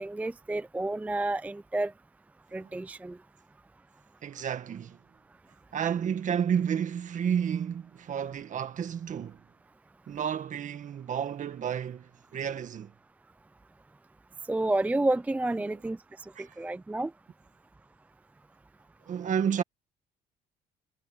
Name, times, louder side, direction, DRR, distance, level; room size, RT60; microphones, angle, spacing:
voice 1, 0.0-1.9 2.5-3.2 14.5-16.0 16.6-17.1, right 2 dB, 10° right, 0.5 m, -30 dB
voice 2, 4.2-5.0 5.7-9.4 10.1-12.9 16.4-16.5 19.1-19.6, right 8 dB, 50° right, 1.9 m, -31 dB
cardioid pair, 110°, 17 cm